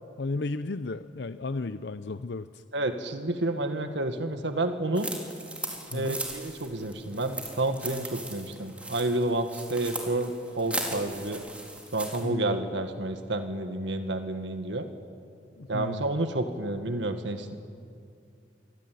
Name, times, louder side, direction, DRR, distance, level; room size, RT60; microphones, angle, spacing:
voice 1, 0.2-2.6 5.9-6.2 12.2-12.6 15.6-16.2, left 3 dB, 70° left, 12 dB, 0.6 m, -34 dB
voice 2, 2.7-5.1 5.9-11.4 11.9-14.9 15.7-17.6, right 2 dB, 85° right, 7 dB, 1.7 m, -30 dB
sound 1, 5.0-12.2, right 2 dB, 5° right, 4.1 m, -38 dB
27.0 x 21.5 x 9.3 m, 2.4 s
head